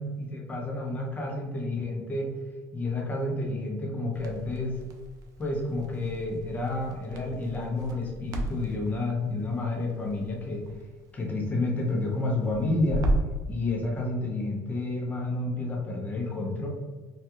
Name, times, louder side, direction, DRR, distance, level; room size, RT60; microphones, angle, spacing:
voice 1, 0.0-2.3 2.7-4.8 5.4-10.7 11.1-13.1 13.5-16.7, left 2 dB, 25° left, -1 dB, 0.7 m, -30 dB
Crackle, 4.1-13.4, right 1 dB, 60° right, 0.4 m, -35 dB
2.4 x 2.3 x 2.8 m, 1.3 s
cardioid pair, 115°, 7 cm